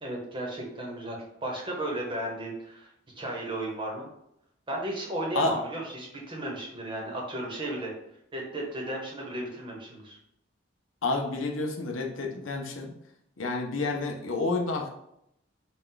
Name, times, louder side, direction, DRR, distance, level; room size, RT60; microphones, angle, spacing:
voice 1, 0.0-2.9 3.2-4.1 4.7-7.9 8.3-10.2, right 1 dB, 25° right, -1 dB, 1.0 m, -34 dB
voice 2, 11.0-12.9 13.4-14.9, left 3 dB, 90° left, 3 dB, 0.7 m, -29 dB
4.3 x 2.3 x 3.8 m, 0.77 s
head